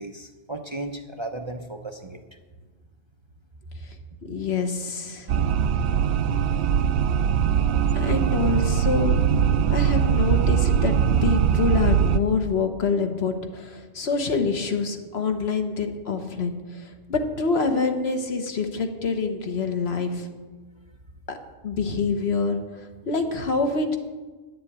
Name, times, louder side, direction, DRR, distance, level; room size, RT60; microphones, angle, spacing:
voice 1, 0.0-2.2 4.3-4.4, right 2 dB, 30° right, 5 dB, 0.7 m, -35 dB
voice 2, 4.3-5.3 7.9-9.4 9.7-10.9 11.2-20.3 21.3-21.4 21.6-24.0, left 4 dB, 70° left, 6 dB, 1.4 m, -26 dB
sound 1, 5.3-12.2, right 8 dB, 80° right, 0.8 m, -21 dB
10.5 x 7.6 x 8.5 m, 1.3 s
omnidirectional pair, 1.1 m